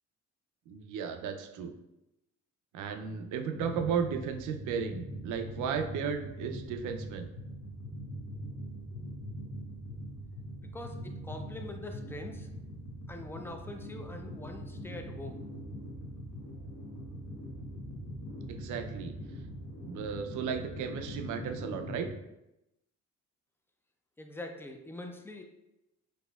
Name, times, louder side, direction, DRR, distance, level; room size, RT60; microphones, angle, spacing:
voice 1, 0.7-1.7 2.7-7.3 18.5-19.2 19.8-22.1, right 6 dB, 80° right, 6 dB, 0.5 m, -35 dB
sound 1, 3.5-22.1, equal, 65° left, 1.0 m, -42 dB
voice 2, 10.7-12.5 13.1-15.4 24.2-25.4, left 2 dB, 10° left, 4 dB, 0.4 m, -44 dB
4.1 x 2.8 x 2.3 m, 0.91 s
cardioid pair, 90°, 30 cm